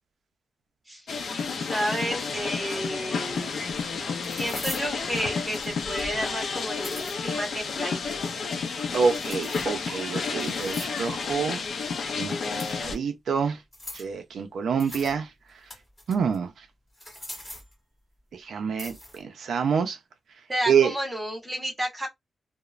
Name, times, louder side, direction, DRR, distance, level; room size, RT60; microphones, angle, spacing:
sound 1, 1.1-13.0, left 5 dB, 65° left, 0.5 m, -31 dB
voice 1, 1.6-3.7 4.3-8.2 20.5-22.1, equal, 10° right, 1.1 m, -31 dB
sound 2, 4.2-4.9 5.5-5.9 6.6-7.2 9.1-9.8 10.4-11.1 12.5-13.0 13.7-14.1 14.8-15.2 15.5-16.4 16.9-17.7 18.8-19.2, left 1 dB, 15° left, 1.7 m, -41 dB
voice 2, 8.9-11.6 12.2-13.6 14.0-15.3 16.1-16.5 18.5-20.0 20.7-20.9, right 6 dB, 80° right, 0.4 m, -26 dB
3.0 x 2.0 x 2.4 m
wide cardioid pair, 155°, 0 cm